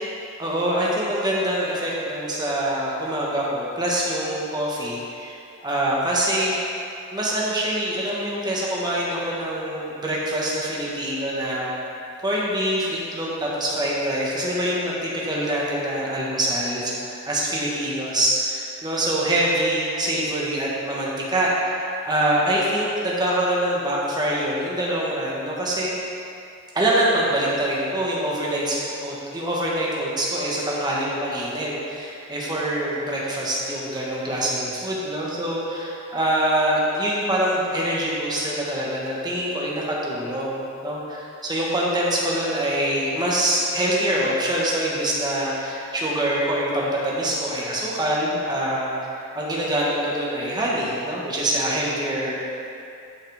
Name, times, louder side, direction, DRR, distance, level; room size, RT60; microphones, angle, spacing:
voice 1, 0.4-5.4 5.6-6.5 7.1-11.7 12.2-25.9 26.7-48.9 49.3-52.4, right 1 dB, 20° right, -5 dB, 1.4 m, -24 dB
11.5 x 5.7 x 3.5 m, 2.6 s
head